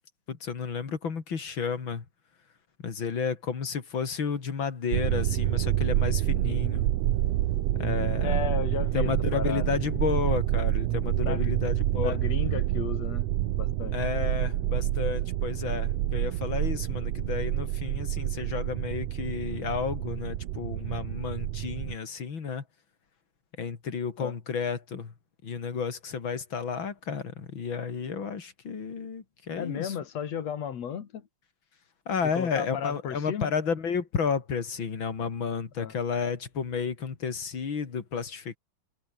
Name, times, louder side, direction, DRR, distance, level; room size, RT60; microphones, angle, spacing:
voice 1, 0.3-2.0 2.8-6.9 7.7-8.3 8.9-12.2 13.9-22.6 23.6-25.1 25.4-29.9 32.1-38.6, left 6 dB, 45° left, 3.2 m, -32 dB
sound 1, 4.9-22.0, right 14 dB, 70° right, 1.9 m, -28 dB
voice 2, 8.2-9.7 11.2-11.5 12.0-13.2 13.6-13.9 24.2-24.3 29.5-31.3 32.3-33.5 35.8-35.9, left 8 dB, 65° left, 3.1 m, -34 dB
omnidirectional pair, 3.3 m